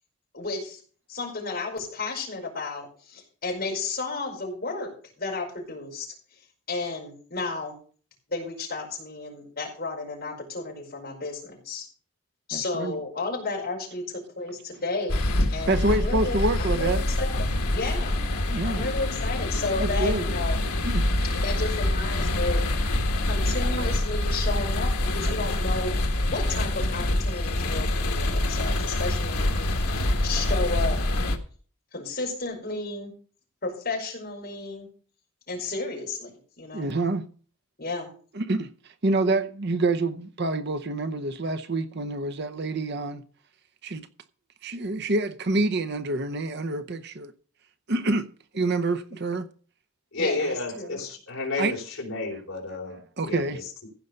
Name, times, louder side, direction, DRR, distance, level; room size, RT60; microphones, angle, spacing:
voice 1, 0.3-0.8 1.1-4.9 5.2-6.1 6.7-7.7 8.3-11.9 12.5-20.6 21.4-22.6 23.3-25.9 26.3-31.0 31.9-33.1 33.6-34.9 35.5-36.9 37.8-38.1 50.2-51.0, left 3 dB, 45° left, 5.0 m, -33 dB
voice 2, 12.5-13.0 15.7-17.0 18.5-18.9 19.8-20.3 20.8-21.1 23.8-23.9 36.7-37.3 38.3-38.7 39.0-43.2 43.8-44.1 44.6-47.3 47.9-48.3 48.5-49.5 51.6-51.8 53.2-53.6, right 2 dB, 50° right, 0.7 m, -27 dB
sound 1, 15.1-31.4, left 1 dB, 85° left, 1.6 m, -26 dB
voice 3, 50.1-53.9, left 2 dB, 65° left, 3.8 m, -31 dB
15.5 x 5.5 x 6.5 m
head